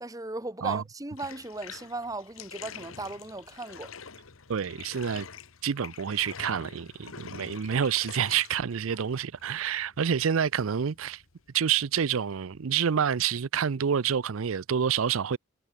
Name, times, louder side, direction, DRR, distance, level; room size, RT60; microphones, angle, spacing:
voice 1, 0.0-3.9, right 2 dB, 15° right, 1.1 m, -37 dB
Bathtub (filling or washing), 1.1-12.8, left 6 dB, 90° left, 1.5 m, -46 dB
voice 2, 4.5-5.3 5.6-11.2 11.5-15.4, right 7 dB, 85° right, 0.5 m, -28 dB
head